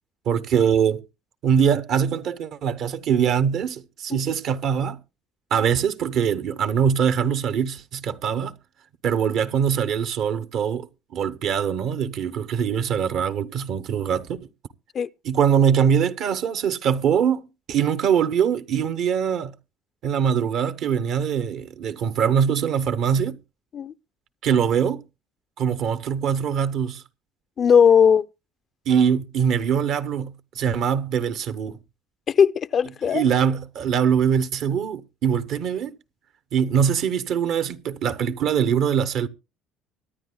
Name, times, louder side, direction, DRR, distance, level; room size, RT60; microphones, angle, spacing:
voice 1, 0.3-1.0 1.4-5.0 5.5-8.5 9.0-14.5 15.2-19.5 20.0-23.4 24.4-25.0 25.6-27.0 28.9-31.8 33.0-35.9 36.5-39.3, right 7 dB, 65° right, 0.9 m, -23 dB
voice 2, 27.6-28.2 32.3-33.2, left 7 dB, 50° left, 0.5 m, -17 dB
24.0 x 9.6 x 2.2 m
hypercardioid pair, 70°, 0 cm